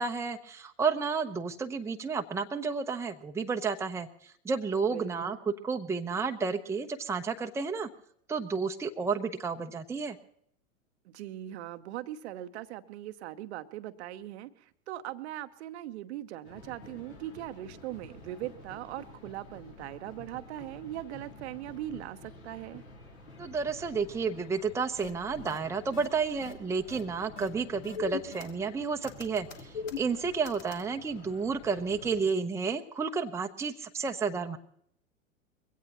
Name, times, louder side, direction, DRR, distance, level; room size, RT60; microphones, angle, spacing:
voice 1, 0.0-5.4 5.6-7.9 8.3-10.2 23.4-29.7 30.0-34.6, right 5 dB, 5° right, 4 dB, 0.8 m, -31 dB
voice 2, 4.9-5.4 11.0-22.8, right 13 dB, 55° right, 11 dB, 0.9 m, -40 dB
sound 1, 16.4-32.2, left 2 dB, 80° left, 3.6 m, -50 dB
sound 2, 25.0-25.1 25.5-25.6 25.9-26.1 26.4-26.5 26.9-27.0 27.4-27.5 27.8-28.7 29.0-30.8, left 7 dB, 55° left, 1.6 m, -40 dB
22.0 x 16.5 x 3.0 m, 0.67 s
figure-of-eight pair, 95°, 41 cm